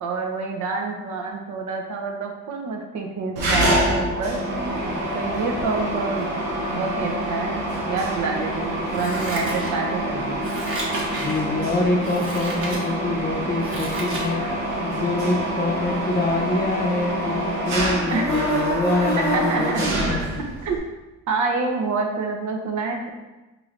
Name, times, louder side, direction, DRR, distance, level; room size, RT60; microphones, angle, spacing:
voice 1, 0.0-4.4 5.1-6.4 6.7-10.4 14.4-14.5 18.1-18.3 19.2-19.8 20.6-20.8 21.3-23.1, right 4 dB, 75° right, 2 dB, 0.7 m, -27 dB
Mechanisms, 3.4-20.8, right 1 dB, 90° right, 1.1 m, -26 dB
Scissors, 8.9-10.0 10.4-11.4 12.0-12.8 13.3-14.3 14.7-14.8, right 2 dB, 45° right, 1.3 m, -33 dB
voice 2, 11.0-14.4 14.8-20.2, left 2 dB, 30° left, 3 dB, 0.6 m, -25 dB
4.8 x 3.2 x 2.5 m, 1.1 s
cardioid pair, 90°, 30 cm